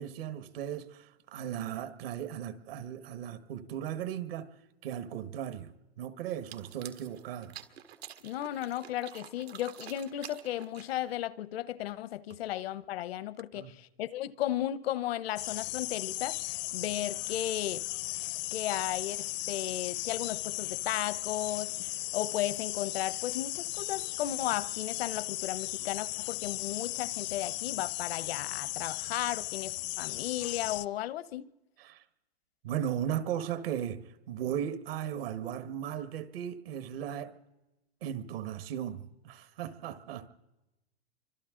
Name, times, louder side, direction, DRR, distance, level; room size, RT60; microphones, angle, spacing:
voice 1, 0.0-4.5 4.8-7.5 13.5-13.7 31.8-32.0 32.6-34.0 34.3-37.3 38.0-40.3, right 10 dB, 65° right, 1.5 m, -36 dB
sound 1, 6.3-11.2, right 11 dB, 85° right, 2.0 m, -49 dB
voice 2, 8.2-17.8 18.5-31.5, left 13 dB, 70° left, 0.9 m, -35 dB
sound 2, 15.4-30.9, left 20 dB, 45° left, 0.6 m, -36 dB
28.0 x 25.0 x 3.8 m
supercardioid pair, 145°, 31 cm